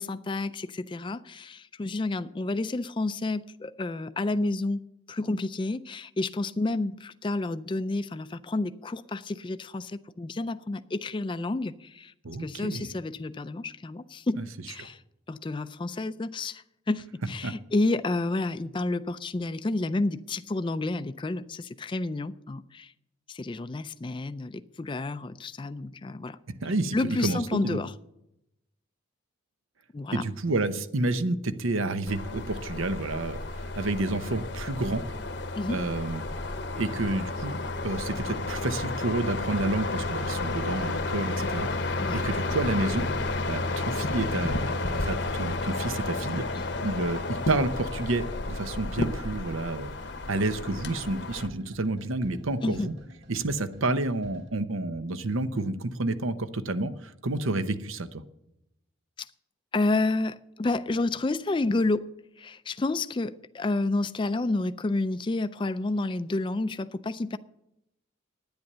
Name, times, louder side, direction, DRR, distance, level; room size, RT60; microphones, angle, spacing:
voice 1, 0.0-12.1 12.4-14.4 14.7-15.0 15.3-22.9 23.3-26.4 26.9-27.9 29.9-30.2 35.6-35.8 36.9-37.0 42.0-42.2 46.5-46.7 52.6-52.9 59.2-59.3 59.7-62.1 62.4-67.4, left 2 dB, 25° left, 0.4 m, -30 dB
voice 2, 12.2-12.9 14.4-14.5 14.8-14.9 17.4-17.5 26.6-27.8 30.1-35.0 35.7-36.3 36.8-41.7 42.1-43.1 43.5-46.5 46.8-49.9 50.3-52.9 53.3-58.2, right 2 dB, 85° right, 0.9 m, -30 dB
sound 1, 32.1-51.5, left 2 dB, 55° left, 0.9 m, -32 dB
sound 2, 46.2-54.5, equal, 55° right, 2.1 m, -51 dB
10.5 x 9.7 x 6.7 m
head